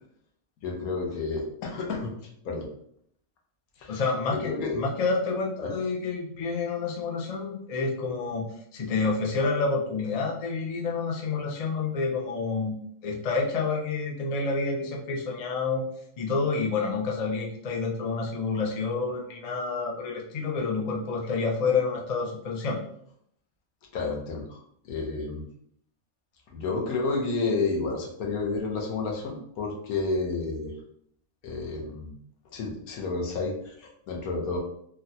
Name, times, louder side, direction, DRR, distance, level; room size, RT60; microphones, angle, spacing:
voice 1, 0.6-2.1 2.4-2.7 3.8-4.0 4.3-4.8 5.6-5.7 18.5-18.6 23.9-24.6 24.8-25.5 26.5-30.7 31.4-32.2 32.5-34.6, left 3 dB, 85° left, 0 dB, 1.3 m, -30 dB
voice 2, 3.9-8.4 8.7-12.7 13.0-15.9 16.2-22.8, left 4 dB, 65° left, -1 dB, 0.3 m, -28 dB
3.7 x 2.3 x 2.7 m, 0.69 s
omnidirectional pair, 1.5 m